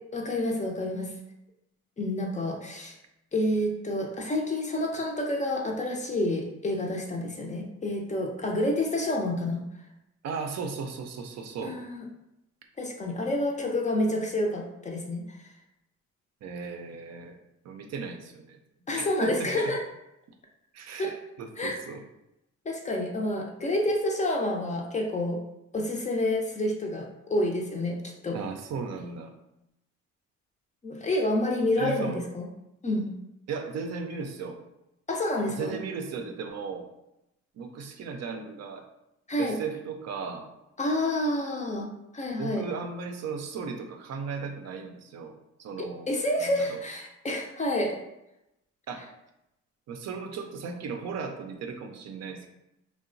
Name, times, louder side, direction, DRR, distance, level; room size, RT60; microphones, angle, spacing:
voice 1, 0.1-1.1 2.0-3.0 3.3-9.6 11.6-12.0 12.8-15.4 18.9-19.8 21.0-21.1 21.6-21.8 22.7-25.4 25.7-28.0 28.2-28.4 30.8-32.5 32.8-33.1 35.1-35.8 39.3-39.6 40.8-41.9 42.1-42.7 46.1-48.0, left 1 dB, 25° left, 0 dB, 0.4 m, -28 dB
voice 2, 10.2-11.8 16.4-17.4 17.6-18.6 18.9-19.7 20.7-22.0 28.3-29.3 31.7-32.2 33.5-34.6 35.5-36.9 37.6-38.8 39.4-40.5 42.3-45.3 45.6-46.1 46.4-46.8 48.9-49.1 49.9-52.5, right 5 dB, 60° right, 4 dB, 0.5 m, -36 dB
2.9 x 2.1 x 2.5 m, 0.86 s
cardioid pair, 90°, 30 cm